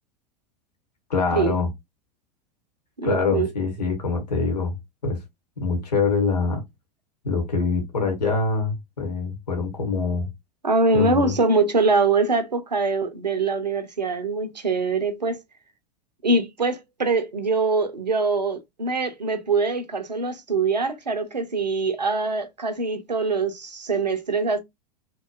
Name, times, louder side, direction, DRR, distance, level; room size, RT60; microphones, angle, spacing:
voice 1, 1.1-1.7 3.0-4.8 5.0-5.2 5.6-6.6 7.2-10.3 10.9-11.3, left 4 dB, 75° left, 1.1 m, -24 dB
voice 2, 3.0-3.5 10.6-15.4 16.2-24.6, right 3 dB, 85° right, 0.6 m, -23 dB
2.8 x 2.2 x 2.2 m
figure-of-eight pair, 90°, 21 cm